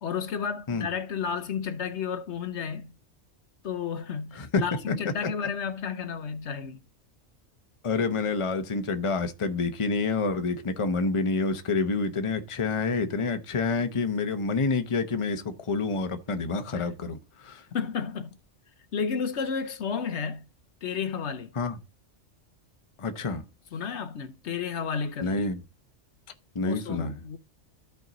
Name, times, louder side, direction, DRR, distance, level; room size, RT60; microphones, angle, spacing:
voice 1, 0.0-2.9 3.6-6.8 16.7-16.9 17.7-18.4 18.9-20.4 20.8-21.5 23.7-25.5 26.6-27.4, left 6 dB, 65° left, 1.0 m, -32 dB
voice 2, 4.3-4.9 7.8-17.6 21.5-21.8 23.0-23.4 25.2-25.6 26.5-27.2, left 4 dB, 30° left, 0.8 m, -28 dB
13.5 x 4.6 x 4.0 m
omnidirectional pair, 1.3 m